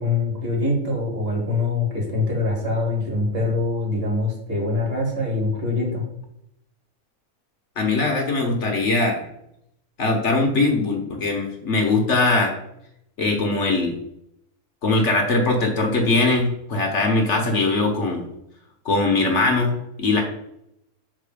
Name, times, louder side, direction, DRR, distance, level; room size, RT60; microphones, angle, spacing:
voice 1, 0.0-6.0, left 3 dB, 40° right, -1 dB, 2.1 m, -24 dB
voice 2, 7.8-9.3 10.0-12.5 13.2-13.9 14.8-18.2 18.8-20.2, left 3 dB, 55° left, 2 dB, 1.2 m, -21 dB
5.9 x 3.8 x 4.9 m, 0.78 s
omnidirectional pair, 1.5 m